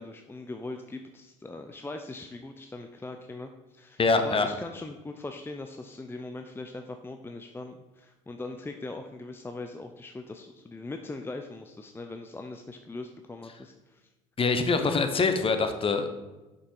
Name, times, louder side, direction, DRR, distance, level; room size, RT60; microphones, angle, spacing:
voice 1, 0.0-14.1 14.8-15.1, left 2 dB, 15° left, 6 dB, 0.6 m, -40 dB
voice 2, 4.0-4.5 14.4-16.1, left 4 dB, 35° left, 8 dB, 1.0 m, -24 dB
6.7 x 5.4 x 4.6 m, 1.1 s
hypercardioid pair, 70°, 17 cm